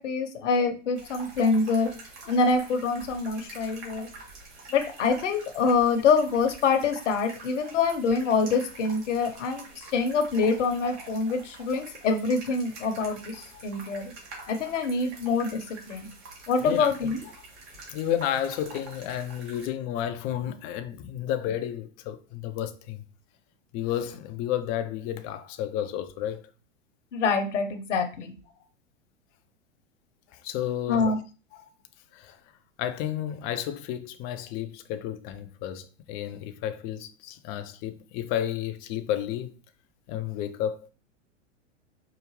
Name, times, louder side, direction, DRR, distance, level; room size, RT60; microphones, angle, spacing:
voice 1, 0.0-1.9 2.3-4.1 4.7-14.1 14.5-16.1 16.5-17.2 27.1-28.3 30.9-31.2, left 4 dB, 70° left, 0.8 m, -25 dB
sound 1, 1.0-19.7, right 3 dB, 60° right, 1.7 m, -46 dB
voice 2, 16.6-16.9 17.9-23.0 23.7-26.4 30.3-31.1 32.1-32.4 32.8-39.5 40.1-40.9, left 11 dB, 25° left, 0.3 m, -31 dB
4.7 x 2.4 x 3.0 m
hypercardioid pair, 100°, 38 cm